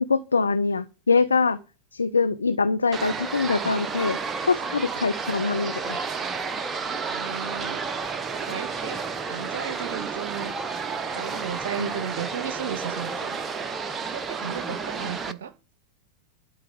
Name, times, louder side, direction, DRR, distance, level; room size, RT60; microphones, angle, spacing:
voice 1, 0.1-1.6 1.9-4.2 4.5-6.0 11.8-11.9, left 4 dB, 75° left, 0.6 m, -23 dB
sound 1, 2.9-15.3, right 5 dB, 20° right, 0.8 m, -31 dB
voice 2, 7.1-7.8 8.3-9.0 9.3-10.6 11.1-13.4 14.0-15.5, right 8 dB, 60° right, 0.8 m, -35 dB
12.0 x 4.7 x 8.4 m
figure-of-eight pair, 90°, 0 cm